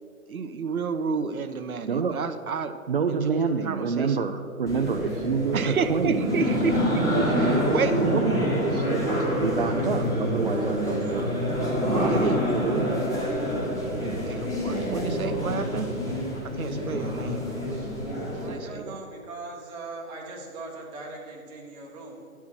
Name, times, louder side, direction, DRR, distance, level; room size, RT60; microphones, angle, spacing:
voice 1, 0.3-2.8 3.1-4.3 5.5-7.1 7.4-8.3 11.9-12.4 14.2-15.9 16.4-17.8 18.3-19.0, right 5 dB, 75° right, 9 dB, 0.8 m, -31 dB
voice 2, 1.9-2.2 2.9-6.3 7.1-8.4 8.9-11.3 11.9-13.1, right 5 dB, 40° right, 3 dB, 0.4 m, -27 dB
sound 1, 4.7-18.6, equal, 5° left, 1.4 m, -27 dB
voice 3, 8.7-9.0 10.4-11.2 12.4-12.5 13.0-13.4 18.4-22.5, right 3 dB, 10° right, -2 dB, 0.9 m, -42 dB
10.5 x 5.8 x 6.2 m, 2.3 s
figure-of-eight pair, 140°, 44 cm